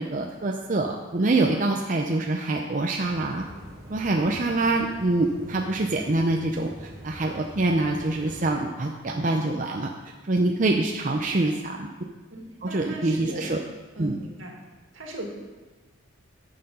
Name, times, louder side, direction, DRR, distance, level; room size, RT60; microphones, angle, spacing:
voice 1, 0.0-3.4 3.9-9.9 10.3-11.9 12.6-13.6 14.0-14.1, right 2 dB, 40° right, 1 dB, 0.6 m, -25 dB
sound 1, 3.0-8.5, equal, 20° right, 2.6 m, -44 dB
voice 2, 11.1-11.5 12.3-13.5 14.0-14.6 14.9-15.3, right 1 dB, 75° right, -1 dB, 2.3 m, -39 dB
11.0 x 6.8 x 5.4 m, 1.2 s
head